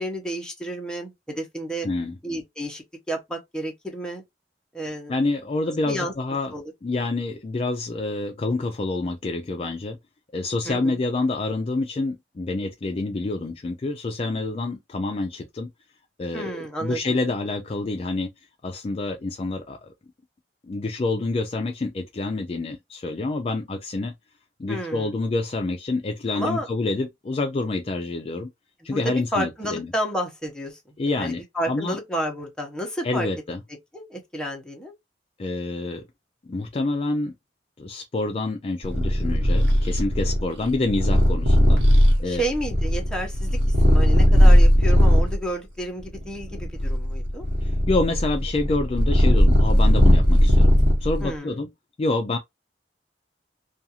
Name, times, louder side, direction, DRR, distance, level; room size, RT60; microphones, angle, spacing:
voice 1, 0.0-1.9 2.2-4.2 4.7-5.1 5.9-6.1 6.5-6.7 10.7-11.0 16.3-17.0 24.7-25.1 26.3-26.7 28.8-33.3 33.9-34.9 42.3-47.5 51.2-51.6, right 1 dB, 5° left, 0.8 m, -31 dB
voice 2, 1.8-2.2 4.9-6.5 6.8-10.0 10.3-15.7 16.2-19.9 20.6-24.1 24.6-28.5 28.8-29.9 31.0-32.0 33.0-33.6 35.4-36.0 36.4-37.3 37.8-42.4 47.6-50.7 51.0-51.7 52.0-52.4, left 2 dB, 35° left, 0.3 m, -27 dB
Purr, 38.8-45.4 46.0-51.3, equal, 75° right, 1.1 m, -18 dB
2.5 x 2.3 x 2.8 m
head